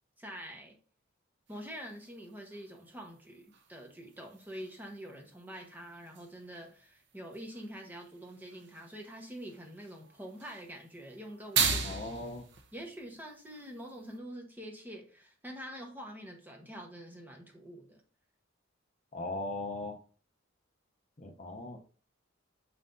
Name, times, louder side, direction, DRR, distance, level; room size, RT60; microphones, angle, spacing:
voice 1, 0.2-0.8 1.5-12.3 12.7-18.0, equal, 10° right, 1 dB, 1.1 m, -46 dB
sound 1, 1.5-14.2, right 5 dB, 60° right, 0.9 m, -40 dB
voice 2, 11.8-12.4 19.1-19.9 21.2-21.8, left 2 dB, 35° left, 4 dB, 0.7 m, -38 dB
6.4 x 5.6 x 2.6 m, 0.41 s
head